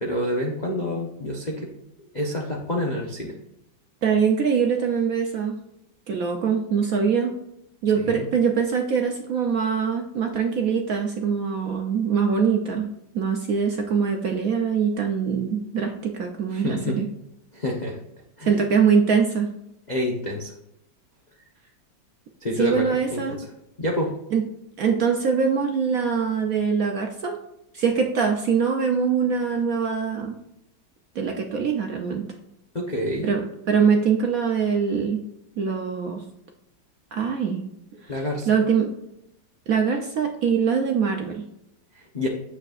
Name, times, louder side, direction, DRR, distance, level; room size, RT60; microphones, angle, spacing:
voice 1, 0.0-1.7 2.1-3.3 7.9-8.3 16.5-17.0 17.5-18.0 18.4-18.5 19.9-20.5 22.4-23.4 23.8-24.1 32.7-33.3 38.1-38.5 41.9-42.3, left 1 dB, 45° left, 0 dB, 0.5 m, -28 dB
voice 2, 4.0-5.6 6.1-7.3 7.8-17.1 18.5-19.5 22.5-23.4 24.3-24.4 24.8-27.4 27.7-30.4 31.1-32.2 33.2-35.2 35.6-36.2 37.1-37.6 38.0-38.9 39.7-41.5, right 6 dB, 60° right, 3 dB, 0.9 m, -23 dB
9.2 x 7.1 x 2.4 m, 0.81 s
omnidirectional pair, 2.1 m